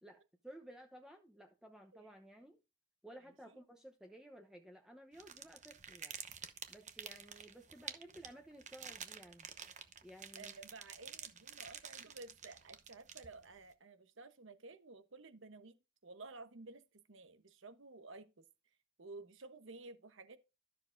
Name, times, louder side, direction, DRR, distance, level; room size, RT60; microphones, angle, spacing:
voice 1, 0.0-2.6 3.0-6.2 6.7-9.5 10.0-10.5, right 1 dB, 5° right, 0.9 m, -56 dB
sound 1, 5.1-13.6, right 7 dB, 35° right, 0.9 m, -50 dB
voice 2, 10.4-15.7 16.0-18.4 19.0-20.4, right 3 dB, 60° right, 1.1 m, -53 dB
12.5 x 6.8 x 2.6 m
head